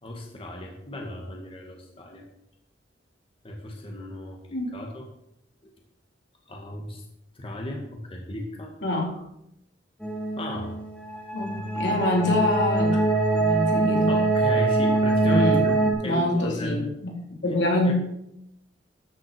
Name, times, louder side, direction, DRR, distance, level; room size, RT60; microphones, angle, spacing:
voice 1, 0.0-2.3 3.4-5.1 5.6-5.7 6.5-7.0 7.3-8.7 10.4-10.8 12.9-13.0 14.1-16.9 17.8-17.9, left 1 dB, 30° left, 1 dB, 2.0 m, -35 dB
voice 2, 8.8-9.2 11.3-12.9 13.3-14.2 15.2-15.6 16.0-17.1 17.4-17.9, left 1 dB, 80° left, -1 dB, 3.9 m, -25 dB
sound 1, 10.0-15.9, right 2 dB, 5° left, 2.3 m, -23 dB
13.5 x 7.8 x 6.2 m, 0.79 s
head